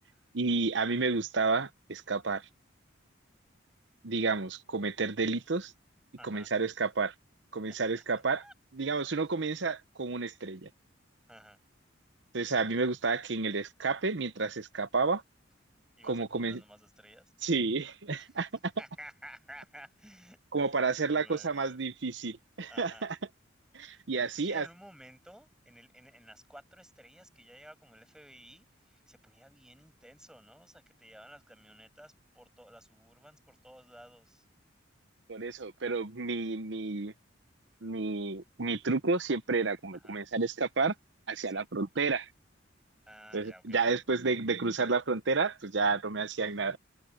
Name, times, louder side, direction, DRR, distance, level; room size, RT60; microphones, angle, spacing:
voice 1, 0.3-2.5 4.0-5.7 6.2-7.1 7.5-8.4 8.7-10.7 12.3-15.2 16.0-16.6 17.4-18.5 20.5-23.2 23.7-24.7 35.3-37.1 37.8-40.9 41.3-42.3 43.3-46.8, right 4 dB, 65° right, 0.9 m, -30 dB
voice 2, 6.2-6.5 8.4-8.5 8.9-9.3 11.3-11.6 16.0-17.3 18.2-18.4 18.8-21.8 22.7-23.1 23.9-34.5 39.9-40.2 41.4-41.7 43.1-43.8, equal, 5° right, 7.6 m, -54 dB
head